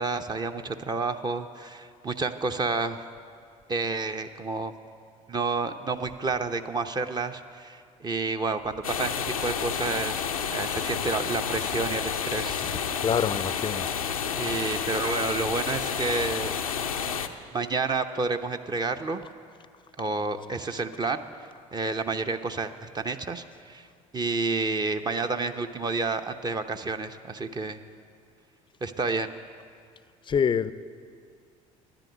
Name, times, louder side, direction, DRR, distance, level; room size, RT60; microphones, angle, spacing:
voice 1, 0.0-3.0 3.7-4.7 5.3-12.9 14.4-16.5 17.5-19.2 20.0-21.2 21.7-23.9 24.1-27.8 28.8-29.3, right 3 dB, 25° right, 7 dB, 0.8 m, -30 dB
sound 1, 8.8-17.3, left 7 dB, 90° left, 0.6 m, -30 dB
voice 2, 13.0-13.9 30.3-30.7, left 7 dB, 30° left, 16 dB, 0.5 m, -25 dB
13.0 x 10.5 x 7.9 m, 2.2 s
figure-of-eight pair, 60°, 17 cm